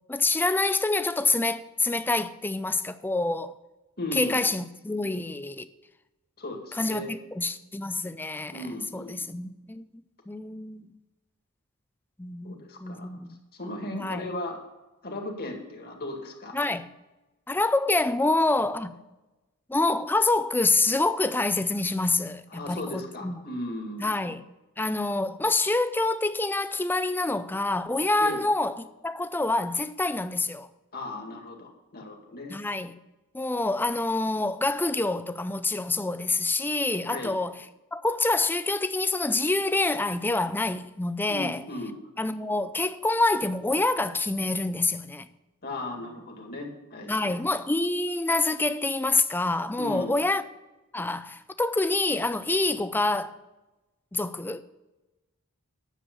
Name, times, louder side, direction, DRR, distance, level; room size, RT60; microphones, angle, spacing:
voice 1, 0.1-3.5 4.1-5.7 6.7-8.6 8.9-9.9 10.3-10.9 12.2-13.3 13.9-14.3 16.5-16.9 17.5-19.0 19.7-23.4 24.0-24.4 24.8-30.7 32.5-32.9 33.3-37.5 37.9-41.6 42.2-45.3 47.1-50.4 50.9-53.3 54.1-54.6, left 2 dB, 10° left, 0.4 m, -26 dB
voice 2, 4.0-4.4 6.4-7.1 8.5-9.3 12.4-13.1 13.5-14.6 15.0-16.6 22.5-24.1 28.2-28.4 30.9-32.5 37.1-37.4 41.3-41.9 45.6-47.4 49.8-50.2, left 1 dB, 45° left, 2.1 m, -36 dB
10.0 x 7.2 x 5.3 m
head